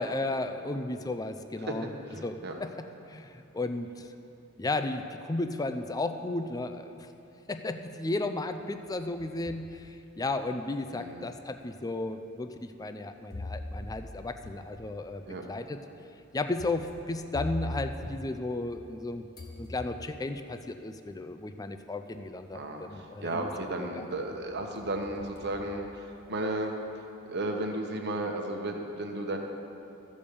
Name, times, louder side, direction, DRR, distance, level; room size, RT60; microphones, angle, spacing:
voice 1, 0.0-1.9 2.2-2.7 3.1-4.1 4.6-7.1 7.5-15.8 16.3-19.3 19.6-23.5 23.9-24.1, left 2 dB, 15° left, 8 dB, 0.4 m, -34 dB
voice 2, 2.1-2.6 10.9-11.3 15.3-15.4 22.5-26.7 27.3-29.4, right 1 dB, 55° right, 3 dB, 1.1 m, -34 dB
sound 1, 8.8-9.7 10.3-10.4 11.3-11.4 13.3-19.0 19.3-20.4 21.5-21.6 22.1-22.6 22.9-23.7 24.1-26.5, left 2 dB, 45° left, 1.6 m, -43 dB
14.0 x 5.2 x 6.8 m, 2.7 s
head